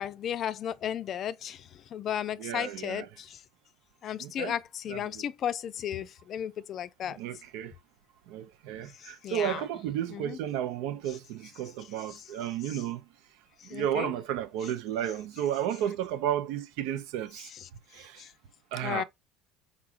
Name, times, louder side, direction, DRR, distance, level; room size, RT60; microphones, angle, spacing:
voice 1, 0.0-3.4 4.0-7.2 9.0-9.6 10.1-10.4 12.1-12.2 13.6-14.1 18.2-18.3 18.8-19.0, left 9 dB, 50° left, 0.4 m, -34 dB
voice 2, 2.4-3.1 4.2-4.6 4.9-5.2 7.0-7.7 8.3-13.1 13.6-17.5 17.9-18.3 18.7-19.0, right 10 dB, 70° right, 0.5 m, -33 dB
4.8 x 3.7 x 2.5 m
hypercardioid pair, 75°, 0 cm